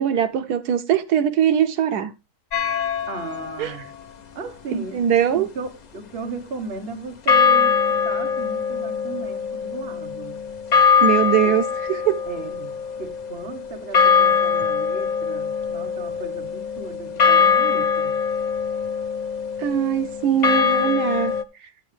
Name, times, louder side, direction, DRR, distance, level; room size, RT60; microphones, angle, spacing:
voice 1, 0.0-2.1 3.6-3.7 4.7-5.5 11.0-12.2 19.6-21.3, right 9 dB, 80° right, 1.2 m, -21 dB
sound 1, 2.5-3.6 7.3-21.4, left 6 dB, 50° left, 0.5 m, -22 dB
voice 2, 3.0-3.9 4.3-5.1 5.3-10.5 12.3-18.2, right 4 dB, 40° right, 1.4 m, -36 dB
11.0 x 7.8 x 3.3 m
omnidirectional pair, 1.7 m